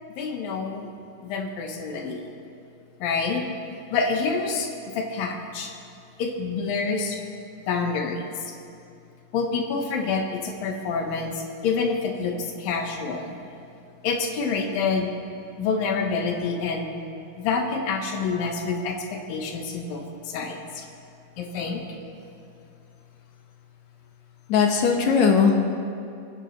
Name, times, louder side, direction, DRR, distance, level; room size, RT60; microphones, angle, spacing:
voice 1, 0.2-0.9 1.2-2.2 3.0-3.4 3.9-4.7 4.9-5.7 6.2-7.2 7.7-8.3 9.3-13.3 14.0-15.1 15.6-16.9 17.4-20.8 21.4-21.8, left 4 dB, 85° left, 2 dB, 3.1 m, -27 dB
voice 2, 24.5-25.6, left 6 dB, 65° left, 2 dB, 2.1 m, -19 dB
30.0 x 9.9 x 3.3 m, 2.5 s
omnidirectional pair, 3.9 m